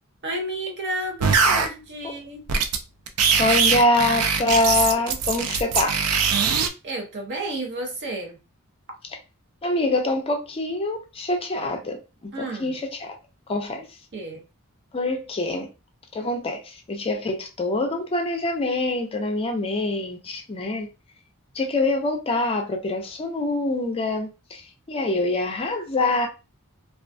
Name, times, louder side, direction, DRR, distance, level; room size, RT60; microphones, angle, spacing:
voice 1, 0.2-2.4 6.8-8.4 12.3-12.8 14.1-14.4, right 1 dB, 50° right, 0.7 m, -31 dB
sound 1, 1.2-1.7 2.5-2.8 3.1-6.7, right 5 dB, 90° right, 0.4 m, -21 dB
voice 2, 3.4-6.0 9.6-12.0 12.2-13.1 13.5-13.8 14.9-15.7 16.1-20.9 21.5-24.6 24.9-26.3, left 2 dB, 25° left, 0.4 m, -25 dB
2.3 x 2.2 x 2.5 m
head